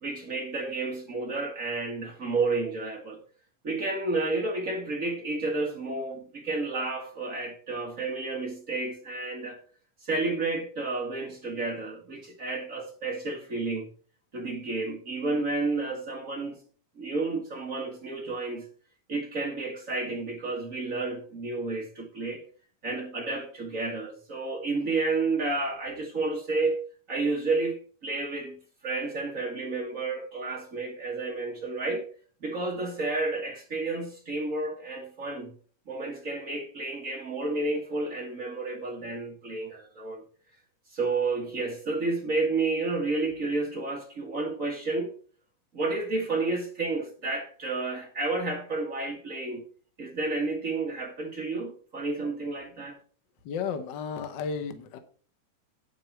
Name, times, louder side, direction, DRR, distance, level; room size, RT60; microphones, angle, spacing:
voice 1, 0.0-3.2 3.6-9.6 10.0-13.9 14.3-16.6 17.0-18.7 19.1-22.4 22.8-32.1 32.4-35.5 35.9-40.2 40.9-45.1 45.7-49.6 50.0-53.0, right 3 dB, 40° right, 1.3 m, -31 dB
voice 2, 53.4-55.0, left 6 dB, 85° left, 1.0 m, -33 dB
9.3 x 8.5 x 4.3 m
omnidirectional pair, 3.8 m